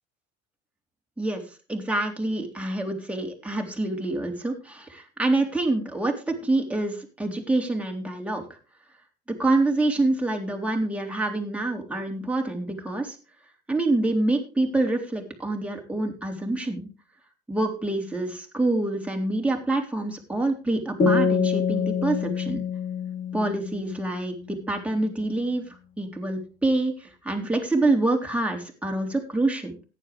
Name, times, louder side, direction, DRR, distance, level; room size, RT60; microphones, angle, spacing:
voice 1, 1.7-8.4 9.4-13.2 13.7-16.9 17.5-22.6 23.3-25.6 26.0-29.8, right 2 dB, 5° right, 2 dB, 3.6 m, -26 dB
sound 1, 21.0-24.5, left 6 dB, 40° left, 4.3 m, -26 dB
14.5 x 10.5 x 3.5 m, 0.34 s
hypercardioid pair, 80°, 21 cm